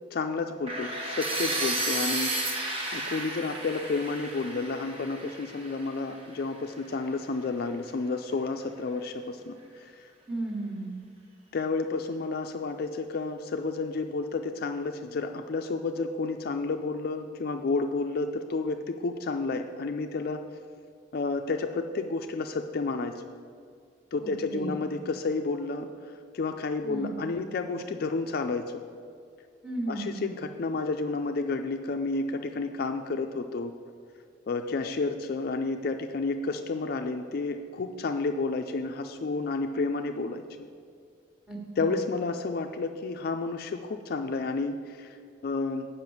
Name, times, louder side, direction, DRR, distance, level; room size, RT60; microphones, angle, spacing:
voice 1, 0.1-2.3 2.9-9.6 11.5-20.4 21.1-23.2 24.1-25.9 26.3-28.7 29.9-33.7 34.5-40.4 41.8-45.2 45.4-45.9, left 3 dB, 50° left, 6 dB, 0.4 m, -31 dB
sound 1, 0.7-6.6, right 2 dB, 30° right, 1.2 m, -33 dB
voice 2, 10.3-11.0 24.2-24.8 26.8-27.2 29.6-30.3 41.5-42.0, right 2 dB, 5° right, 0 dB, 1.3 m, -35 dB
7.8 x 5.6 x 7.0 m, 2.2 s
head